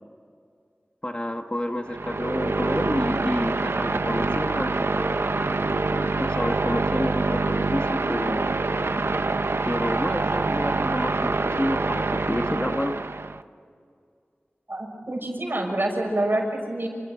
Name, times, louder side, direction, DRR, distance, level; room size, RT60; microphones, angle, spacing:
voice 1, 1.0-5.2 5.8-8.5 9.7-13.0, left 1 dB, 30° left, 4 dB, 1.9 m, -29 dB
sound 1, 1.9-13.4, right 3 dB, 90° right, 0.8 m, -25 dB
voice 2, 14.7-16.9, right 1 dB, 60° right, 2 dB, 6.3 m, -27 dB
28.0 x 27.5 x 6.5 m, 2.2 s
wide cardioid pair, 50°, 4 cm